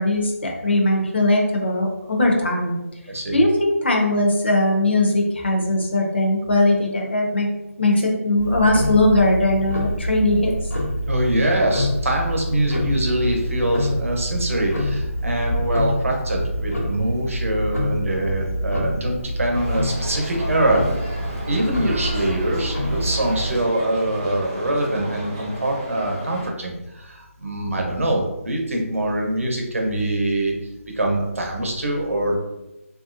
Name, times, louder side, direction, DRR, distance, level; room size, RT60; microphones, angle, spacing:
voice 1, 0.0-2.8 3.3-7.5 7.8-10.5, left 1 dB, 50° left, 1 dB, 0.6 m, -19 dB
voice 2, 3.1-3.4 11.1-20.8 21.5-30.5 30.9-32.4, right 1 dB, 65° right, 1 dB, 0.8 m, -24 dB
Tick-tock, 8.4-23.6, equal, 80° left, 1.0 m, -26 dB
sound 1, 19.5-26.5, equal, 15° right, 0.3 m, -33 dB
3.0 x 2.5 x 2.5 m, 0.93 s
figure-of-eight pair, 175°, 8 cm